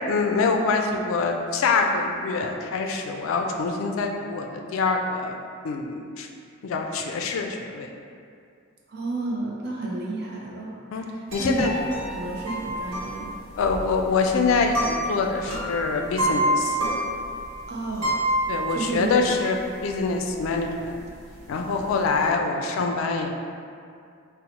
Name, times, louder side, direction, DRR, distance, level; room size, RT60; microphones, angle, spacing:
voice 1, 0.0-5.4 5.6-6.3 6.6-7.9 10.9-11.1 11.3-11.7 13.6-16.8 18.5-19.6 19.8-21.0 21.5-23.3, left 4 dB, 70° left, 3 dB, 0.3 m, -25 dB
voice 2, 8.9-13.3 17.7-18.2 18.7-19.2, right 2 dB, 50° right, -4 dB, 0.6 m, -31 dB
sound 1, 11.3-19.2 19.6-19.7 19.9-20.5 20.8-22.3, right 1 dB, 80° right, 1.0 m, -28 dB
3.9 x 2.0 x 2.8 m, 2.3 s
head